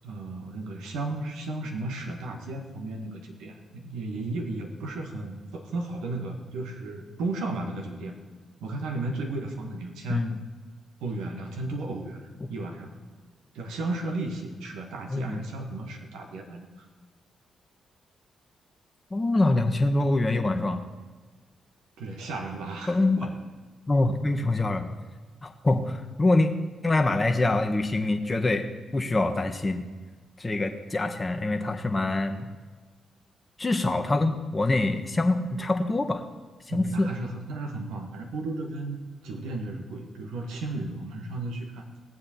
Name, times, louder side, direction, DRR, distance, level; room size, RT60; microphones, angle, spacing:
voice 1, 0.0-8.1 8.6-10.2 11.0-12.9 13.5-16.9 22.0-23.3 36.7-41.9, right 2 dB, 80° right, 2 dB, 1.7 m, -34 dB
voice 2, 15.1-15.4 19.1-20.8 22.9-23.3 23.9-24.9 25.4-26.5 26.8-29.8 30.4-32.4 33.6-36.2 36.7-37.1, left 2 dB, 25° left, 4 dB, 1.3 m, -25 dB
18.5 x 7.7 x 4.5 m, 1.4 s
hypercardioid pair, 45°, 0 cm